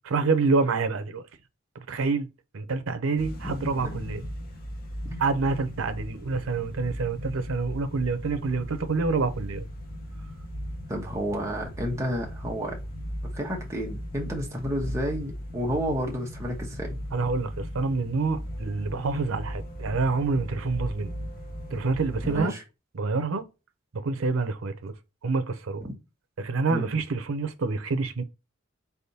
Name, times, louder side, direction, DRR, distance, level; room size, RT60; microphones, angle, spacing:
voice 1, 0.1-1.2 1.9-4.2 5.2-9.7 17.1-21.1 21.7-22.5 22.9-23.4 24.0-24.9 25.2-25.8 26.4-28.2, right 4 dB, 90° right, 0.6 m, -27 dB
sound 1, 3.2-22.4, equal, 45° left, 0.9 m, -37 dB
voice 2, 10.9-12.7 13.3-17.0 22.2-22.6 25.8-25.9 26.7-26.9, equal, 15° right, 1.1 m, -31 dB
4.1 x 3.5 x 2.7 m
head